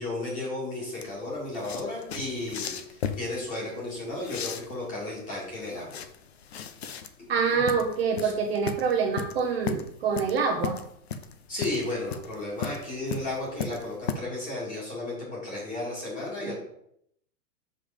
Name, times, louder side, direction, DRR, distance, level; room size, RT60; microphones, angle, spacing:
voice 1, 0.0-6.0 7.5-7.7 8.2-8.3 11.5-16.5, left 2 dB, 15° left, -4 dB, 2.2 m, -34 dB
sound 1, 1.0-14.1, left 6 dB, 45° left, 0.5 m, -36 dB
voice 2, 7.3-10.8 16.4-16.5, right 5 dB, 40° right, 1 dB, 0.8 m, -26 dB
5.6 x 5.2 x 5.0 m, 0.73 s
hypercardioid pair, 170°, 49 cm